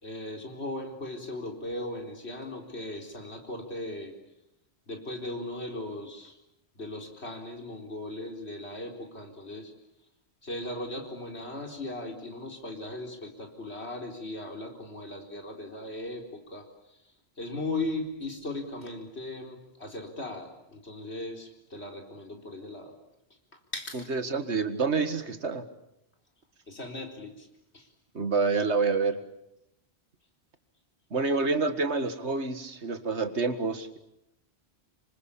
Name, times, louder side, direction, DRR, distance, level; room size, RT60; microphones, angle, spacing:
voice 1, 0.0-4.2 4.9-6.4 6.7-9.7 10.4-22.9 23.5-24.1 26.7-27.5 27.7-27.9, left 2 dB, 75° left, 3 dB, 4.5 m, -38 dB
voice 2, 24.1-25.6 28.1-29.2 31.1-33.9, right 4 dB, 85° right, 9 dB, 2.1 m, -27 dB
27.0 x 24.5 x 8.6 m, 0.85 s
omnidirectional pair, 1.1 m